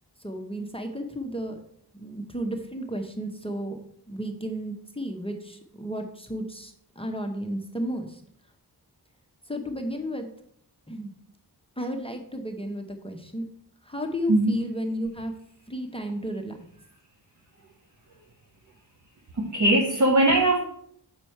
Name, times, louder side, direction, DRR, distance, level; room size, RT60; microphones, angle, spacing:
voice 1, 0.2-1.6 1.9-8.2 9.5-10.3 10.9-11.1 11.8-13.5 13.8-15.3 15.7-16.7, equal, 15° left, 3 dB, 0.8 m, -33 dB
voice 2, 14.3-14.6 19.3-20.6, right 1 dB, 45° right, 2 dB, 0.9 m, -20 dB
6.9 x 5.5 x 4.4 m, 0.66 s
wide cardioid pair, 95°, 41 cm